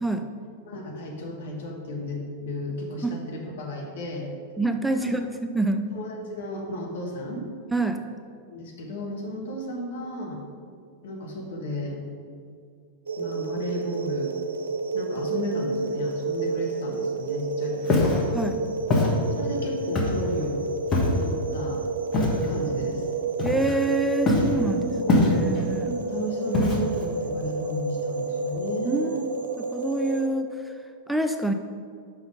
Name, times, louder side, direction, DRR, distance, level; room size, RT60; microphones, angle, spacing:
voice 1, 0.7-4.3 4.9-5.1 5.9-7.5 8.5-10.4 11.0-12.0 13.2-14.3 14.9-18.0 19.3-20.7 21.2-21.8 22.5-23.1 24.7-29.3, equal, 65° left, 0 dB, 1.5 m, -33 dB
voice 2, 4.6-5.9 7.7-8.0 18.3-18.6 23.4-24.9 25.2-25.9 28.9-29.2 29.7-30.8 31.1-31.5, right 2 dB, ahead, 6 dB, 0.4 m, -26 dB
sound 1, 13.1-30.3, right 3 dB, 70° right, 0.7 m, -30 dB
Walk footsteps, 17.8-18.2 18.9-19.1 20.0-20.3 20.9-21.3 22.1-22.5 23.4-23.9 24.3-24.6 25.1-25.6 26.5-27.0, left 2 dB, 30° left, 1.4 m, -22 dB
5.8 x 5.7 x 5.3 m, 2.2 s
figure-of-eight pair, 95°, 0 cm